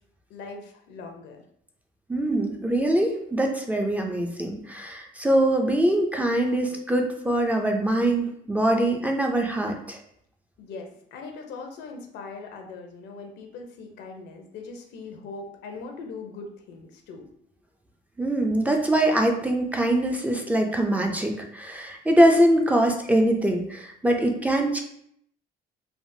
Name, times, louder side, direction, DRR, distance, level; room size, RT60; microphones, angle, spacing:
voice 1, 0.3-1.4 10.6-17.2, left 4 dB, 80° left, 3 dB, 0.6 m, -40 dB
voice 2, 2.1-10.0 18.2-24.8, right 1 dB, 10° right, 2 dB, 0.4 m, -23 dB
3.4 x 2.0 x 2.6 m, 0.70 s
cardioid pair, 110°, 17 cm